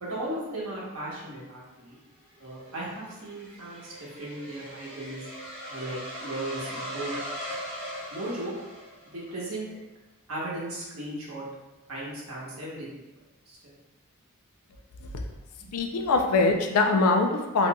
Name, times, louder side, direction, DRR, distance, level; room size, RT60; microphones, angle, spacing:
voice 1, 0.0-2.0 2.4-3.9 4.2-5.2 5.7-7.1 8.1-8.5 9.0-9.7 10.3-11.4 11.9-12.9 13.5-13.7 15.6-15.7, right 1 dB, 70° right, -5 dB, 1.1 m, -36 dB
sound 1, 2.2-9.3, equal, 45° right, 1.3 m, -39 dB
voice 2, 15.7-17.7, left 3 dB, 85° left, 4 dB, 0.4 m, -23 dB
3.9 x 2.5 x 2.2 m, 1.0 s
head